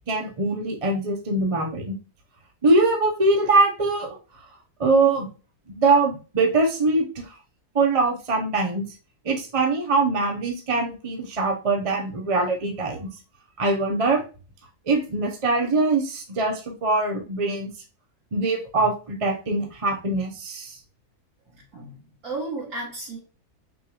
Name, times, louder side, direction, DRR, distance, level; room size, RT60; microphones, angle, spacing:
voice 1, 0.1-2.0 2.6-4.1 4.8-5.3 5.7-7.3 7.7-8.8 9.2-13.1 13.6-14.2 14.9-17.7 18.3-20.8, right 3 dB, 30° right, 1 dB, 0.6 m, -22 dB
voice 2, 21.5-23.2, right 2 dB, 65° right, -8 dB, 2.4 m, -34 dB
6.2 x 2.5 x 2.9 m, 0.34 s
omnidirectional pair, 1.7 m